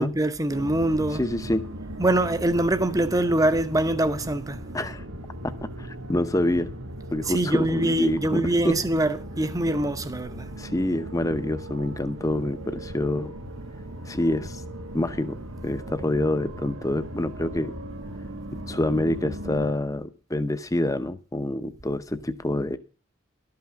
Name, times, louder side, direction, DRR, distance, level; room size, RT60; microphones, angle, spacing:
voice 1, 0.0-1.2 2.0-4.6 7.2-10.5, right 1 dB, 15° right, 0.7 m, -24 dB
sound 1, 0.5-19.7, right 1 dB, 90° right, 1.3 m, -38 dB
voice 2, 1.2-1.6 4.7-5.0 5.4-6.7 7.1-8.8 10.6-13.3 14.1-14.6 14.9-17.7 18.7-22.8, left 1 dB, 15° left, 0.7 m, -27 dB
12.5 x 5.8 x 7.6 m
head